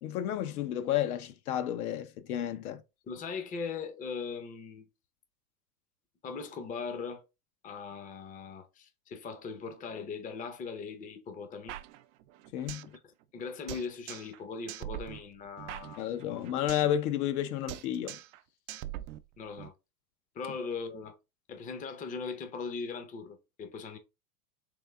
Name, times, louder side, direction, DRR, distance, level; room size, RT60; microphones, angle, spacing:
voice 1, 0.0-2.8 12.5-12.9 16.0-18.2, left 11 dB, 70° left, 0.8 m, -31 dB
voice 2, 3.1-4.9 6.2-7.2 7.6-11.8 12.8-13.0 13.3-16.4 19.4-19.7 20.3-21.1 21.5-24.0, left 5 dB, 20° left, 0.6 m, -39 dB
sound 1, 11.7-13.0 13.2-13.3 13.7-14.4 14.7-17.0 17.2-17.4 17.7-18.4 18.7-19.7, right 14 dB, 55° right, 0.5 m, -43 dB
3.4 x 3.4 x 3.4 m
hypercardioid pair, 115°, 46 cm